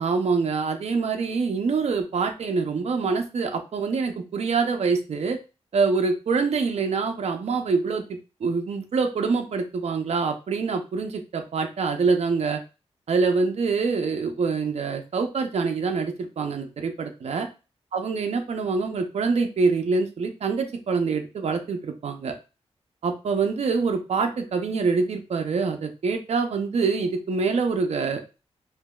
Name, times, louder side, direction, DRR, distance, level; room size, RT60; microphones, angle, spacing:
voice 1, 0.0-5.4 5.7-12.6 13.1-17.5 17.9-22.4 23.0-28.2, right 4 dB, 65° right, 5 dB, 0.6 m, -25 dB
4.9 x 2.7 x 2.3 m, 0.30 s
wide cardioid pair, 125°, 12 cm